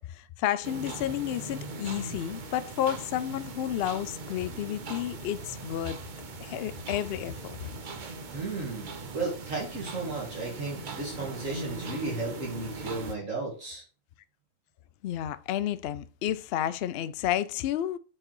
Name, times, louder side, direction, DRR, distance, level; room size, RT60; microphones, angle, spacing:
voice 1, 0.0-6.0 6.4-7.6 15.0-18.0, left 11 dB, 75° left, 0.5 m, -31 dB
sound 1, 0.6-13.1, right 3 dB, 40° right, 0.7 m, -40 dB
voice 2, 8.3-13.8, right 3 dB, 60° right, 2.4 m, -34 dB
8.7 x 4.8 x 3.0 m
omnidirectional pair, 1.5 m